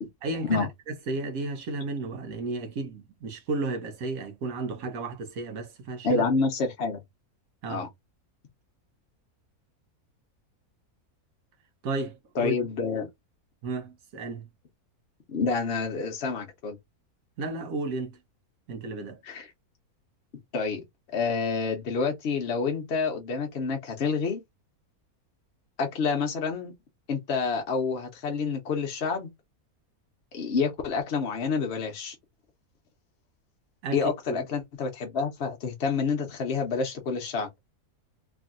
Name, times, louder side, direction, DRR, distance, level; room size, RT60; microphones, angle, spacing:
voice 1, 0.2-0.7 1.1-6.2 7.6-7.8 11.8-12.5 13.6-14.5 17.4-18.2 18.7-19.2 33.8-34.4, right 3 dB, 70° right, 1.1 m, -33 dB
voice 2, 6.0-7.0 7.7-7.9 12.3-13.1 15.3-16.8 19.2-19.5 20.5-20.8 21.1-24.4 25.8-26.7 27.1-29.3 30.3-32.1 33.9-37.5, left 4 dB, 55° left, 0.8 m, -28 dB
3.0 x 2.6 x 2.4 m
omnidirectional pair, 1.6 m